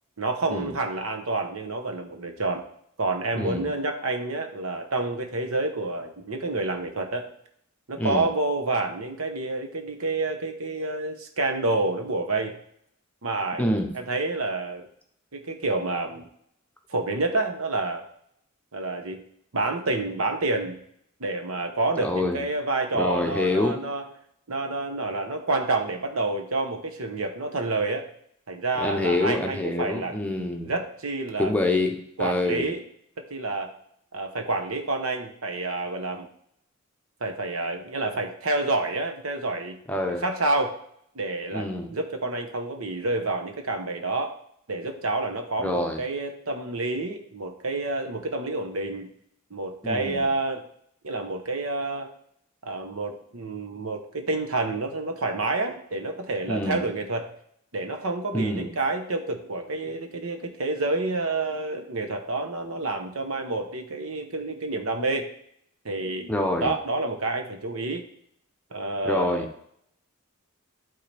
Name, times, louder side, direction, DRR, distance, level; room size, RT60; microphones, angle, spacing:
voice 1, 0.2-2.6 3.0-7.3 7.9-12.5 13.2-13.6 13.9-14.9 15.3-16.3 16.9-18.1 18.7-19.2 19.5-20.8 21.2-24.0 24.5-28.1 28.5-30.2 30.6-31.5 32.2-32.8 33.2-33.7 34.1-36.3 37.2-39.8 40.2-40.8 41.1-44.4 44.7-49.1 49.5-50.7 51.0-52.1 52.6-57.3 57.7-65.3 65.8-66.3 66.6-68.0 68.7-69.5, right 2 dB, 85° right, 5 dB, 1.0 m, -28 dB
voice 2, 3.3-3.7 8.0-8.3 13.6-13.9 22.0-22.4 22.9-23.8 28.8-30.7 31.4-32.7 39.9-40.2 41.5-41.9 45.6-46.0 49.8-50.3 56.5-56.8 58.3-58.7 66.3-66.7 69.0-69.5, left 1 dB, 5° left, 3 dB, 0.7 m, -26 dB
11.5 x 3.8 x 3.4 m, 0.68 s
head